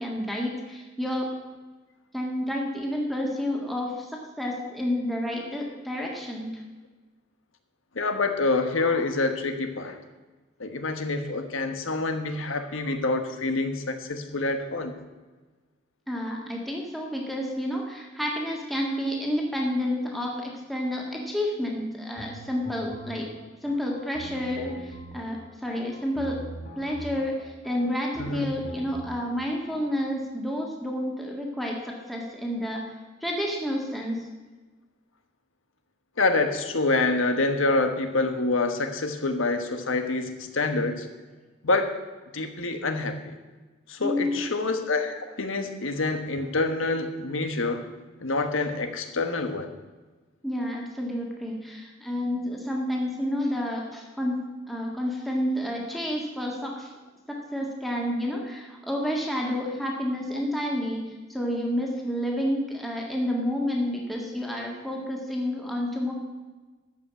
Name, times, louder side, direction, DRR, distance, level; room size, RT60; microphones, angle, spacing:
voice 1, 0.0-1.4 2.1-6.6 16.1-23.3 23.6-26.4 26.8-34.2 44.0-44.4 50.4-56.9 57.3-66.1, equal, ahead, -1 dB, 1.7 m, -30 dB
voice 2, 7.9-10.0 10.6-15.0 28.2-28.5 36.2-41.1 41.6-42.0 42.3-43.3 43.9-47.9 48.2-49.7, left 3 dB, 80° left, 7 dB, 1.3 m, -27 dB
sound 1, 22.1-30.1, right 1 dB, 35° left, 2.0 m, -43 dB
13.0 x 5.8 x 8.2 m, 1.3 s
head